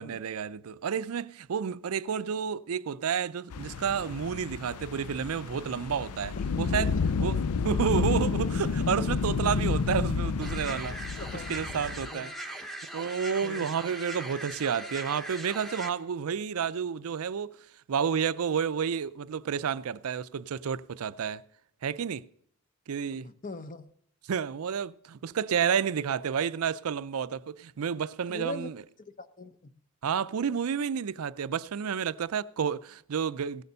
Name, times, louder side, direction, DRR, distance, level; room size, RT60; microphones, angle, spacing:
voice 1, 0.0-6.9 7.2-12.7 12.9-17.5 17.9-21.4 21.8-22.2 22.9-23.3 24.3-28.8 30.0-33.6, right 7 dB, 75° right, 0.4 m, -30 dB
sound 1, 3.5-12.1, left 5 dB, 85° left, 0.5 m, -30 dB
sound 2, 10.4-15.9, right 1 dB, ahead, 0.9 m, -40 dB
voice 2, 11.2-11.6 12.1-12.2 13.4-13.7 23.2-23.9 28.3-28.7 29.2-29.7, left 2 dB, 35° left, 0.8 m, -40 dB
16.5 x 6.7 x 6.7 m
head